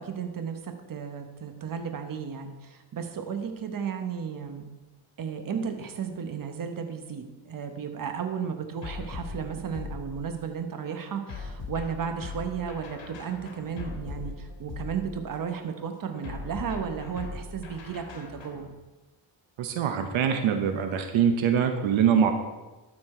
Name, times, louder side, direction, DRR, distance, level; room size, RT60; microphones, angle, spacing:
voice 1, 0.0-4.7 5.2-18.7, right 7 dB, 45° right, 6 dB, 1.1 m, -34 dB
sound 1, 8.8-10.5 11.3-15.5 16.2-18.7, left 3 dB, 75° left, 1.6 m, -40 dB
voice 2, 19.6-22.3, right 7 dB, 85° right, 6 dB, 0.9 m, -23 dB
12.5 x 4.4 x 4.3 m, 1.1 s
cardioid pair, 90°, 46 cm